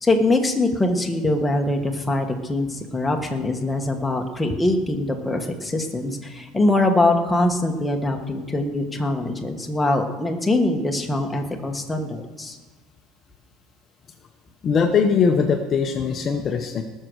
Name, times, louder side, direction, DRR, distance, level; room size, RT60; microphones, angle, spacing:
voice 1, 0.0-12.6, left 2 dB, 5° left, 2 dB, 1.4 m, -23 dB
voice 2, 14.6-16.8, left 6 dB, 30° left, 5 dB, 0.9 m, -20 dB
19.5 x 6.6 x 6.3 m, 1.3 s
cardioid pair, 150°, 0 cm